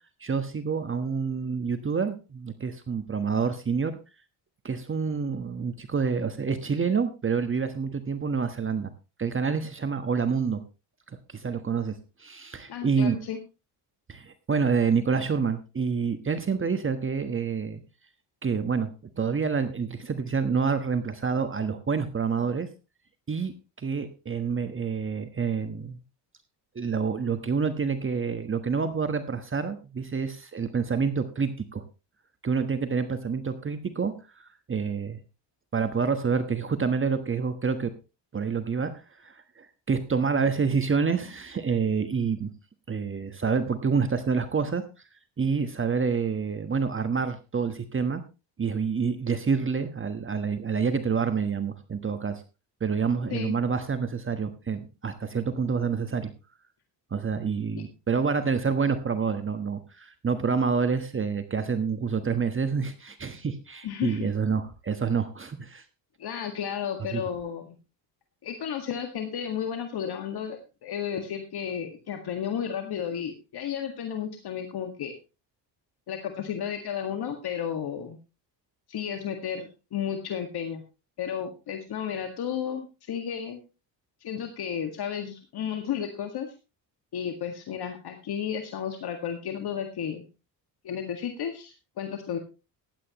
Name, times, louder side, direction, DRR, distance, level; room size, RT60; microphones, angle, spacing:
voice 1, 0.2-4.0 4.6-8.9 9.2-10.6 11.3-13.2 14.1-17.8 18.4-22.7 23.3-26.0 26.7-31.8 32.4-35.2 35.7-37.9 38.3-42.5 42.9-44.8 45.4-48.2 48.6-52.4 52.8-56.3 57.1-65.8 67.1-67.2, right 5 dB, 30° right, 9 dB, 1.3 m, -28 dB
voice 2, 12.7-13.4 53.3-53.5 57.8-57.9 63.8-64.3 66.2-67.8 68.4-75.1 76.1-78.2 78.9-80.8 81.2-83.6 84.2-86.5 87.1-90.2 90.8-92.4, left 8 dB, 60° left, 5 dB, 1.9 m, -33 dB
15.5 x 11.0 x 3.0 m, 0.29 s
cardioid pair, 100°, 44 cm